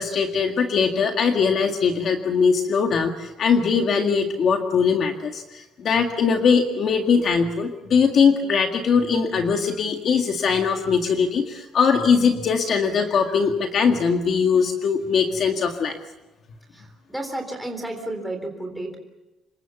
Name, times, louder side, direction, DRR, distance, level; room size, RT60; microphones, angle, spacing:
voice 1, 0.0-16.0, left 5 dB, 45° left, 4 dB, 1.9 m, -21 dB
voice 2, 16.7-19.0, right 1 dB, 5° right, 2 dB, 3.7 m, -32 dB
27.0 x 22.0 x 7.2 m, 1.0 s
cardioid pair, 165°, 0 cm